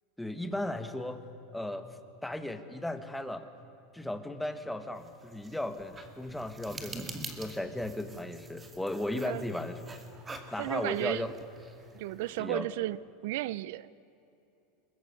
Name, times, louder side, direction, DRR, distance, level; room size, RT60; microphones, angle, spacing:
voice 1, 0.2-1.9 2.2-3.5 3.9-7.1 7.4-9.8 10.5-11.3 12.4-12.8, left 1 dB, 5° left, 9 dB, 1.6 m, -36 dB
sound 1, 5.0-12.4, right 3 dB, 15° right, 2.3 m, -46 dB
voice 2, 10.6-11.3 11.9-13.0 13.2-14.0, right 16 dB, 70° right, 20 dB, 0.6 m, -33 dB
26.0 x 22.0 x 9.6 m, 3.0 s
supercardioid pair, 150°, 0 cm